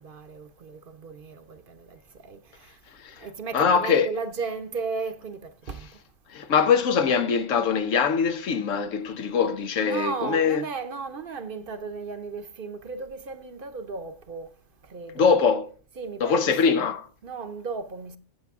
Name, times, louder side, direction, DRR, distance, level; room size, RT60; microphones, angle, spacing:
voice 1, 0.0-2.8 3.2-5.9 9.8-14.5 14.9-15.4 16.0-16.9 17.2-18.2, right 4 dB, 50° right, 0.9 m, -35 dB
voice 2, 3.5-4.1 6.3-10.6 15.1-15.7 16.2-17.1, left 6 dB, 90° left, 1.2 m, -22 dB
13.5 x 8.1 x 3.5 m
omnidirectional pair, 1.3 m